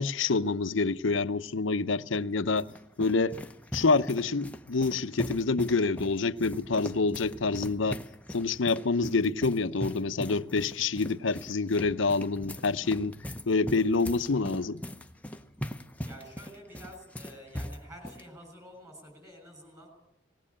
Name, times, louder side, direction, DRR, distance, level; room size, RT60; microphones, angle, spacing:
voice 1, 0.0-2.7 3.0-3.4 3.7-8.0 8.3-13.2 13.5-14.8, left 3 dB, 70° left, 0.7 m, -27 dB
sound 1, 2.1-18.2, equal, 5° left, 0.8 m, -41 dB
voice 2, 16.0-19.9, equal, 15° right, 6.9 m, -49 dB
19.5 x 17.5 x 8.6 m
head